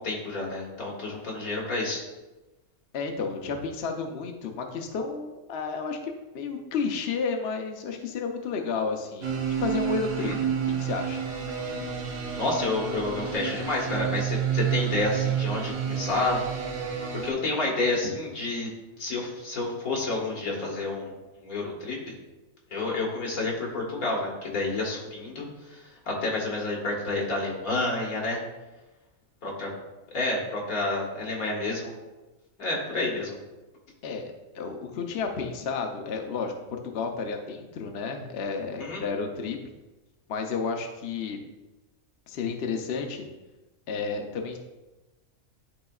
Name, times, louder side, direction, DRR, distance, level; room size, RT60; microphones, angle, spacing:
voice 1, 0.0-2.0 10.2-10.3 12.4-16.4 17.1-18.7 19.0-22.1 22.7-28.4 29.4-29.7 30.1-31.9 32.6-33.4 38.8-39.0, left 2 dB, 90° left, -2 dB, 2.1 m, -29 dB
voice 2, 2.9-10.3 10.7-11.2 34.0-39.6 40.3-41.4 42.3-43.2 43.9-44.6, left 5 dB, 55° left, 3 dB, 0.9 m, -31 dB
sound 1, 9.2-17.3, right 8 dB, 75° right, 1.4 m, -30 dB
11.5 x 4.0 x 2.3 m, 1.1 s
omnidirectional pair, 1.5 m